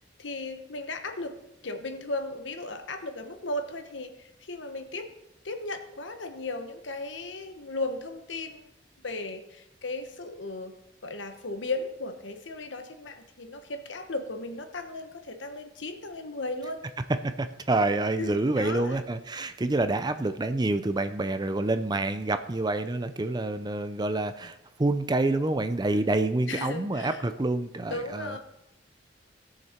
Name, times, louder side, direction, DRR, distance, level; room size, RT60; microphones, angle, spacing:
voice 1, 0.2-5.1 5.4-8.7 9.0-10.7 11.0-16.8 18.2-19.0 26.5-27.2 27.9-28.4, left 2 dB, 85° left, 6 dB, 1.2 m, -36 dB
voice 2, 17.4-28.4, right 2 dB, 25° right, 10 dB, 0.5 m, -27 dB
17.0 x 6.6 x 4.4 m, 0.88 s
head